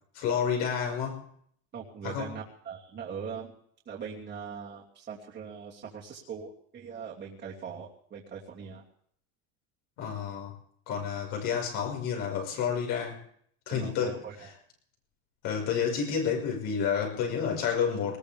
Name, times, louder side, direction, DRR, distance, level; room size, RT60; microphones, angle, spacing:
voice 1, 0.1-1.2 2.0-2.3 10.0-10.5 10.9-13.2 13.7-14.2 15.4-18.2, left 7 dB, 60° left, 0 dB, 5.7 m, -30 dB
voice 2, 1.7-3.5 3.9-8.8 13.7-14.5, right 6 dB, 30° right, -5 dB, 2.9 m, -41 dB
20.5 x 19.5 x 3.6 m, 0.65 s
supercardioid pair, 130°, 36 cm